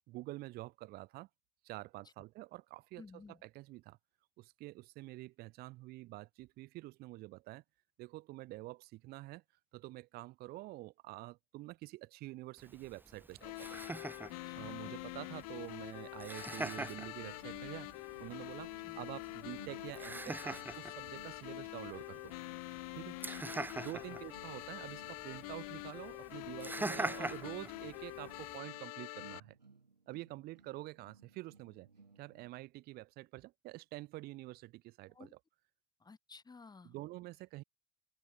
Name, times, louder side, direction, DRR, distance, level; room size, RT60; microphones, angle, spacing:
voice 1, 0.1-1.3 1.6-3.0 3.4-4.0 4.4-7.6 8.0-9.4 9.7-13.8 14.5-17.9 18.2-22.3 22.9-23.2 23.7-29.5 30.1-31.9 32.2-35.3 36.8-37.6, right 19 dB, 50° right, 1.6 m, -47 dB
voice 2, 3.0-3.4 14.3-14.9 18.8-19.0 23.3-23.5 24.1-24.2 35.1-35.3 36.0-36.9, left 4 dB, 20° left, 6.1 m, -56 dB
Laughter, 12.6-28.6, right 2 dB, 10° right, 2.8 m, -45 dB
sound 1, 13.4-29.4, left 22 dB, 60° left, 3.0 m, -46 dB
sound 2, 17.1-32.6, right 4 dB, 85° right, 3.2 m, -62 dB
figure-of-eight pair, 65°, 21 cm